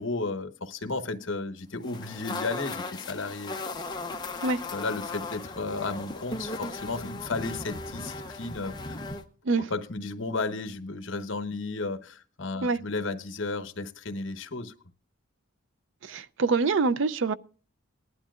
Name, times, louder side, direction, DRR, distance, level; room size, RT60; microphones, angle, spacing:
voice 1, 0.0-3.6 4.7-9.0 9.6-14.7, left 3 dB, 60° left, 1.0 m, -33 dB
sound 1, 1.8-9.2, left 3 dB, 20° left, 0.8 m, -37 dB
voice 2, 16.0-17.3, right 4 dB, 60° right, 0.5 m, -25 dB
19.5 x 11.5 x 2.4 m
head